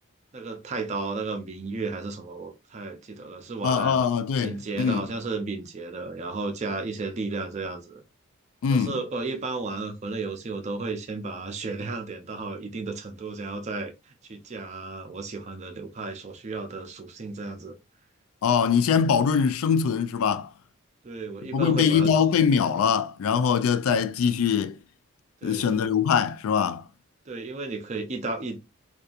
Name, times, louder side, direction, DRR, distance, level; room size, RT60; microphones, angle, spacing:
voice 1, 0.3-4.0 4.4-8.0 8.7-13.9 14.2-17.8 21.0-22.1 25.4-25.8 27.3-28.6, right 3 dB, 35° right, 0.5 m, -33 dB
voice 2, 3.6-5.0 8.6-9.0 18.4-20.5 21.5-24.8 25.4-26.8, left 6 dB, 85° left, 0.3 m, -22 dB
2.7 x 2.3 x 2.4 m
head